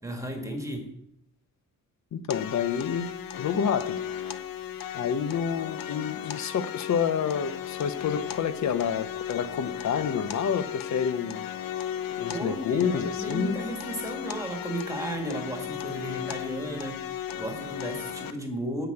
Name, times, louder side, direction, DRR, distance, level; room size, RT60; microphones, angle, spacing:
voice 1, 0.0-0.9 12.3-18.9, right 1 dB, 10° right, 2 dB, 1.7 m, -34 dB
voice 2, 2.1-3.1 3.4-4.0 4.9-11.5 12.2-13.6, left 7 dB, 55° left, 12 dB, 0.8 m, -28 dB
sound 1, 2.3-18.3, left 10 dB, 90° left, 0.8 m, -36 dB
9.1 x 6.0 x 7.8 m, 0.79 s
wide cardioid pair, 155°, 33 cm